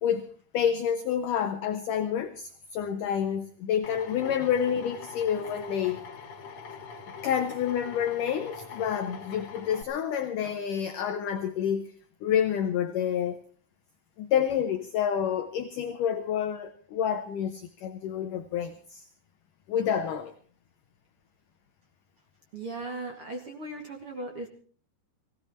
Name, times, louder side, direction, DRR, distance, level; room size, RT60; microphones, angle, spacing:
voice 1, 0.0-6.1 7.2-12.0 12.2-13.4 14.2-19.1 19.7-20.3, left 8 dB, 80° left, 1.9 m, -28 dB
Drill, 3.8-9.8, left 5 dB, 45° left, 2.8 m, -43 dB
voice 2, 22.5-24.5, right 2 dB, 45° right, 2.1 m, -37 dB
18.0 x 17.0 x 4.2 m
omnidirectional pair, 4.9 m